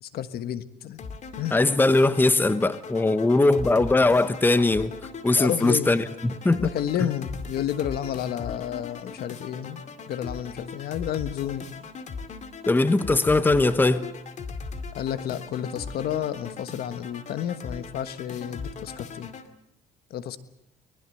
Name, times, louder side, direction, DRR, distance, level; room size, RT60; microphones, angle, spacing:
voice 1, 0.0-1.0 1.4-1.5 5.3-5.9 6.6-11.7 14.9-19.3 20.1-20.4, left 10 dB, 65° left, 13 dB, 1.4 m, -31 dB
sound 1, 1.0-19.5, left 5 dB, 45° left, 2.2 m, -39 dB
voice 2, 1.5-4.9 5.2-6.7 12.7-14.1, left 2 dB, 10° left, 14 dB, 1.0 m, -20 dB
23.5 x 20.5 x 7.8 m, 0.78 s
cardioid pair, 110°, 17 cm